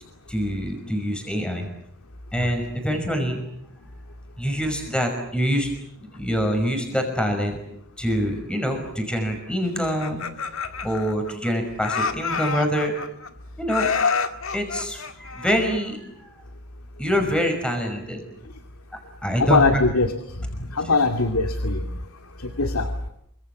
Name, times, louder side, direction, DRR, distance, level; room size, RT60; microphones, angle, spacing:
voice 1, 0.3-1.7 2.3-3.4 4.4-5.7 6.1-7.6 8.0-10.4 10.8-13.0 13.6-13.9 14.5-16.3 17.0-18.2 19.2-19.8, equal, 5° left, 4 dB, 5.7 m, -25 dB
Laughter, 9.8-11.5 11.8-13.3 13.7-16.0, left 5 dB, 65° left, 1.9 m, -28 dB
voice 2, 19.4-21.9 22.4-22.9, left 3 dB, 80° left, 6 dB, 2.3 m, -22 dB
29.0 x 26.0 x 7.3 m, 0.76 s
head